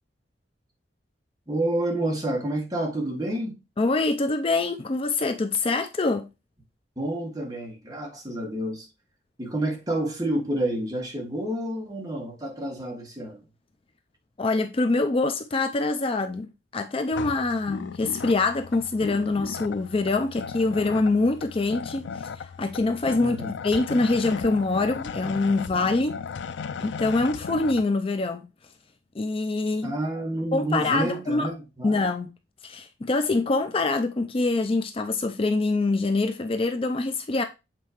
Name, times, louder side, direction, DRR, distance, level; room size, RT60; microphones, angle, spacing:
voice 1, 1.5-3.6 7.0-8.9 9.4-13.4 23.2-23.5 29.8-32.0, right 1 dB, 20° right, 1.8 m, -29 dB
voice 2, 3.8-6.3 14.4-26.2 26.8-28.5 29.2-29.9 30.5-31.5 31.8-32.3 32.6-37.4, left 3 dB, 30° left, 0.5 m, -25 dB
sound 1, 17.1-27.8, left 6 dB, 85° left, 0.4 m, -36 dB
7.6 x 4.3 x 3.0 m
head